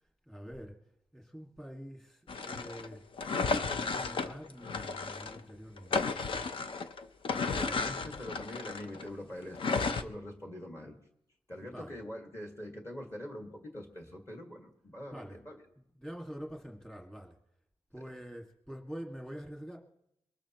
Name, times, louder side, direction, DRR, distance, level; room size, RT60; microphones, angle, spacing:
voice 1, 0.3-0.8 1.1-3.0 3.7-6.5 7.4-7.8 11.6-11.9 15.1-15.4 16.0-17.4 17.9-19.8, equal, 5° left, 0 dB, 2.0 m, -46 dB
sound 1, 2.3-5.4 5.8-9.1 9.5-10.0, left 4 dB, 60° left, 0.8 m, -33 dB
voice 2, 7.3-11.0 11.5-15.6 18.0-18.1, left 1 dB, 25° left, 2 dB, 1.9 m, -44 dB
23.0 x 14.0 x 3.0 m, 0.75 s
wide cardioid pair, 145°, 10 cm